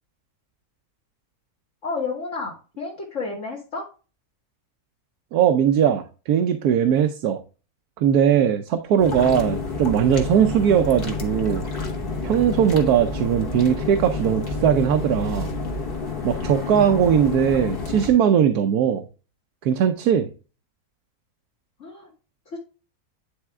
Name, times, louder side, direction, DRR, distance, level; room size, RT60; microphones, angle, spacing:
voice 1, 1.8-3.9 21.8-22.1 22.5-22.6, left 4 dB, 55° left, 1.7 m, -31 dB
voice 2, 5.3-7.4 8.0-11.6 12.2-15.5 16.2-19.0 19.6-20.3, right 8 dB, 85° right, 1.2 m, -19 dB
sound 1, 9.0-18.1, left 4 dB, 40° left, 1.4 m, -29 dB
9.9 x 3.6 x 3.4 m
omnidirectional pair, 1.6 m